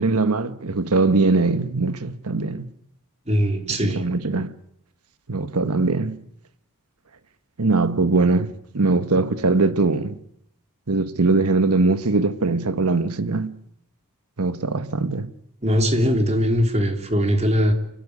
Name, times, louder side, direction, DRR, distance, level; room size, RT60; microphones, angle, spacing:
voice 1, 0.0-2.6 3.9-4.5 5.3-6.2 7.6-10.2 10.9-13.5 14.4-15.3, right 3 dB, 85° right, 1.3 m, -21 dB
voice 2, 3.3-4.1 15.6-17.7, equal, 30° right, 3.2 m, -20 dB
29.0 x 13.5 x 9.5 m
head